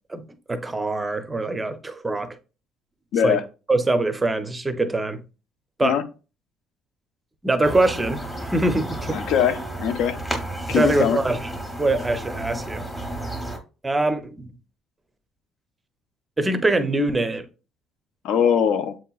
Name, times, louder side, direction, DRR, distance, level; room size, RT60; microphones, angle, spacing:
voice 1, 0.1-2.3 3.2-3.4 3.7-5.2 5.8-6.0 7.4-9.3 10.7-11.4 11.8-12.8 13.8-14.5 16.4-17.5, right 2 dB, 10° right, 0.5 m, -23 dB
voice 2, 3.1-3.4 5.8-6.1 9.1-10.2 10.7-11.2 18.2-19.0, left 8 dB, 70° left, 0.5 m, -21 dB
sound 1, 7.6-13.6, right 1 dB, 10° left, 0.8 m, -32 dB
7.4 x 2.8 x 2.3 m
cardioid pair, 150°, 0 cm